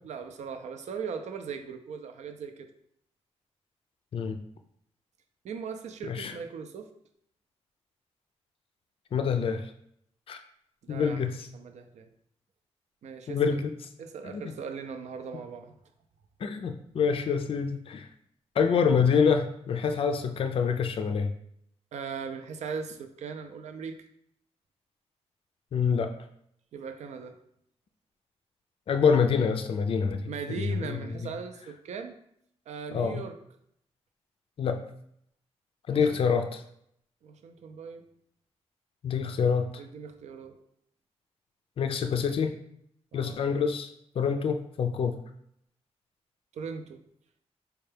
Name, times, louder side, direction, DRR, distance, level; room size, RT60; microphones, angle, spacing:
voice 1, 0.0-2.7 5.4-6.9 10.8-12.1 13.0-13.6 14.0-15.7 21.9-24.0 26.7-27.3 30.3-32.2 32.7-33.4 35.9-36.5 37.2-38.0 39.8-40.6 43.1-43.3 44.4-44.5 46.5-47.0, right 6 dB, 80° right, 7 dB, 0.4 m, -39 dB
voice 2, 9.1-9.7 10.3-10.4 10.9-11.5 13.3-13.7 14.2-14.4 16.4-18.1 18.6-21.3 25.7-26.1 28.9-30.2 30.6-31.2 32.9-33.2 34.6-34.8 35.9-36.6 39.0-39.7 41.8-42.5 43.1-43.9 44.2-45.2, left 6 dB, 55° left, 6 dB, 0.3 m, -26 dB
4.4 x 2.3 x 3.3 m, 0.71 s
cardioid pair, 85°, 12 cm